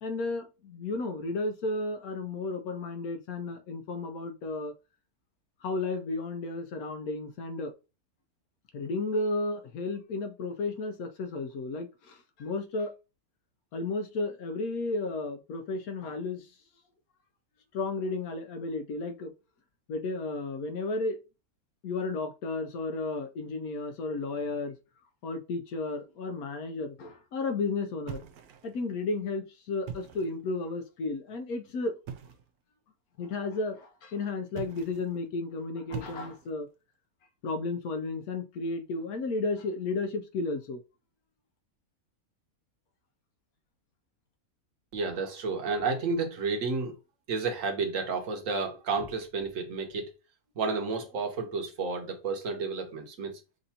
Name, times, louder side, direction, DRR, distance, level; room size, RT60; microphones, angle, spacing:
voice 1, 0.0-4.7 5.6-7.7 8.7-12.9 13.7-16.5 17.7-19.3 19.9-21.2 21.8-24.7 25.2-28.2 28.6-32.0 33.2-36.7 37.4-40.8, left 3 dB, 75° left, 1.2 m, -33 dB
sound 1, 28.1-28.9 29.7-30.4 32.1-32.5 34.5-35.2 35.9-36.6, right 7 dB, 85° right, 1.1 m, -42 dB
voice 2, 44.9-46.9 47.3-50.1 50.6-53.4, right 4 dB, 60° right, 1.3 m, -31 dB
6.4 x 2.6 x 2.8 m
omnidirectional pair, 1.6 m